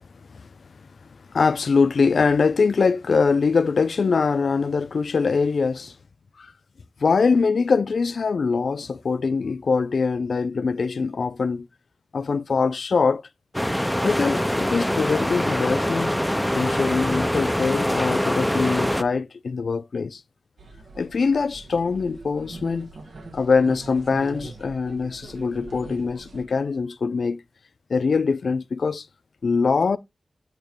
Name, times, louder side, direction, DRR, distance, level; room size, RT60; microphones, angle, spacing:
voice 1, 1.3-6.0 6.4-6.5 7.0-11.7 12.1-13.2 14.0-16.1 16.5-20.2 21.0-22.9 23.3-27.4 27.9-29.1 29.4-30.0, left 4 dB, 75° left, 0.4 m, -23 dB
sound 1, 13.5-19.0, equal, 5° left, 0.4 m, -24 dB
sound 2, 20.6-26.4, right 2 dB, 85° right, 1.4 m, -42 dB
8.8 x 3.0 x 4.4 m
wide cardioid pair, 95°, 0 cm